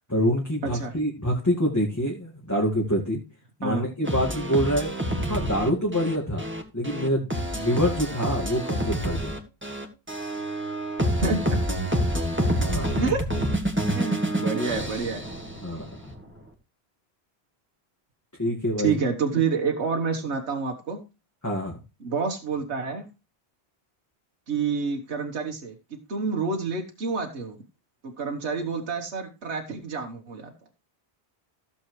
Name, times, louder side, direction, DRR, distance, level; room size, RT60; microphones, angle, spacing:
voice 1, 0.1-3.2 3.6-4.9 5.3-9.4 12.6-13.0 15.6-16.1 18.4-19.0 21.4-21.8, equal, 15° left, -3 dB, 2.0 m, -26 dB
voice 2, 0.6-0.9 3.6-3.8 11.2-11.6 13.0-13.2 13.9-15.2 18.8-21.0 22.0-23.1 24.5-27.6 28.0-30.5, right 5 dB, 80° right, 2 dB, 1.6 m, -28 dB
sound 1, 4.0-16.0, equal, 10° right, 1.7 m, -28 dB
15.5 x 7.1 x 3.2 m, 0.30 s
omnidirectional pair, 1.1 m